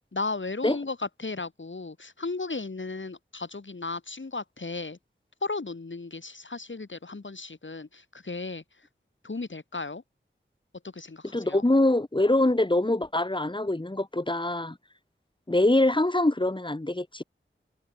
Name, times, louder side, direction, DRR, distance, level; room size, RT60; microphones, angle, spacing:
voice 1, 0.1-5.0 5.4-8.6 9.2-10.0 10.9-11.6, left 3 dB, 65° left, 6.9 m, -35 dB
voice 2, 11.3-14.8 15.5-17.2, left 1 dB, 25° left, 2.5 m, -24 dB
wide cardioid pair, 70°, 21 cm